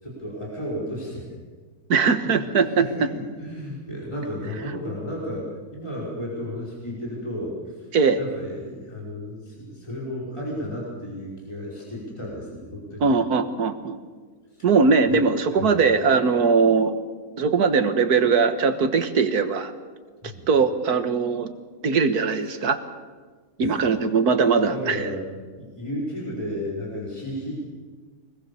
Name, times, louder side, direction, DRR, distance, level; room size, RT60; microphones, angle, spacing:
voice 1, 0.0-1.3 2.2-7.9 8.2-13.1 14.5-14.7 15.1-15.8 20.2-20.5 23.6-24.1 24.6-25.2 25.6-27.5, left 1 dB, 20° left, -5 dB, 5.5 m, -33 dB
voice 2, 1.9-2.7 3.0-3.1 7.9-8.2 13.0-14.0 14.6-16.9 17.4-19.7 20.5-21.5 21.8-22.8 23.6-25.0, right 5 dB, 80° right, 8 dB, 1.9 m, -20 dB
25.0 x 20.0 x 7.1 m, 1.5 s
omnidirectional pair, 1.6 m